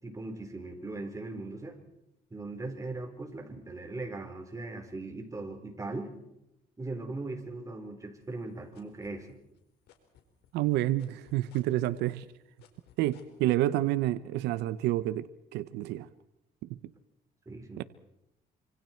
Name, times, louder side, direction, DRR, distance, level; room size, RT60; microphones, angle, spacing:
voice 1, 0.0-1.8 2.3-6.1 6.8-9.4 17.5-17.8, right 2 dB, 20° right, 4.3 m, -39 dB
sound 1, 8.2-9.6 9.9-13.4, left 11 dB, 80° left, 4.2 m, -59 dB
voice 2, 10.5-12.2 13.0-16.1 16.6-16.8 17.8-17.9, right 14 dB, 90° right, 0.8 m, -29 dB
27.0 x 26.0 x 4.5 m
cardioid pair, 110°, 17 cm